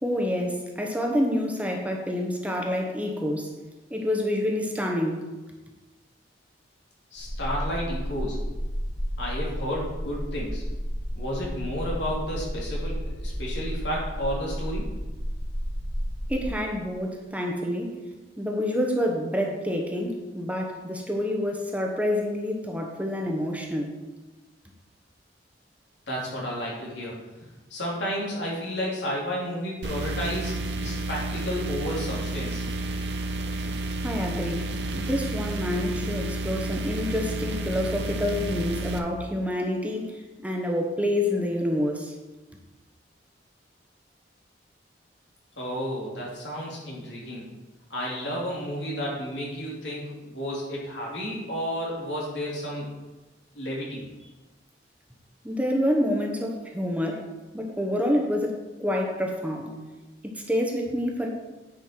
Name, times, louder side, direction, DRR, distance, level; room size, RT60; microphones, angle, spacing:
voice 1, 0.0-3.5 3.9-5.3 16.3-18.0 18.4-24.0 34.0-34.7 34.9-42.1 55.4-59.8 60.2-61.3, left 1 dB, 10° right, 1 dB, 1.0 m, -28 dB
voice 2, 7.1-8.4 9.2-10.6 11.2-14.9 26.1-27.2 27.7-32.6 45.5-47.4 47.9-52.9 53.5-54.3, equal, 85° left, -4 dB, 2.9 m, -32 dB
sound 1, 7.2-16.5, equal, 60° left, 1.9 m, -32 dB
sound 2, 29.8-39.0, right 2 dB, 70° right, 0.8 m, -31 dB
9.4 x 5.6 x 4.5 m, 1.1 s
head